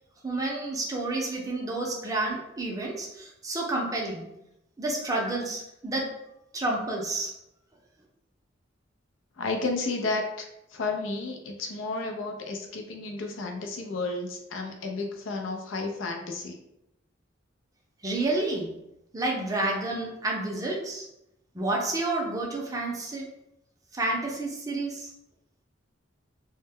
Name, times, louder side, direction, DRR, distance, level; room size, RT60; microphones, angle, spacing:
voice 1, 0.2-4.3 4.8-6.1 6.5-7.3 18.0-18.7 19.1-21.1 21.5-23.3 23.9-25.1, right 2 dB, 20° right, -1 dB, 0.5 m, -30 dB
voice 2, 9.4-10.5 10.7-16.6, left 3 dB, 85° left, 3 dB, 0.4 m, -32 dB
2.1 x 2.1 x 3.4 m, 0.84 s
head